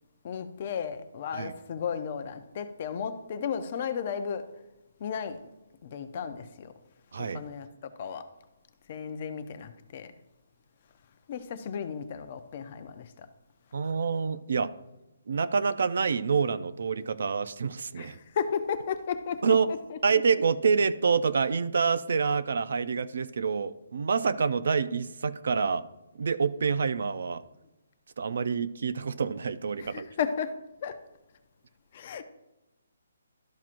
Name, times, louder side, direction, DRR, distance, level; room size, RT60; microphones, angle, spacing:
voice 1, 0.2-4.5 5.0-5.4 5.8-6.7 7.2-8.3 8.9-10.1 11.3-13.3 18.0-20.0 29.8-30.6 30.8-31.0 31.9-32.2, left 7 dB, 30° left, 0.5 m, -34 dB
voice 2, 13.7-14.7 15.3-18.2 19.4-19.7 20.0-25.8 26.2-27.4 28.2-30.1, right 5 dB, 55° right, 0.4 m, -27 dB
12.5 x 5.9 x 2.5 m
hypercardioid pair, 175°, 0 cm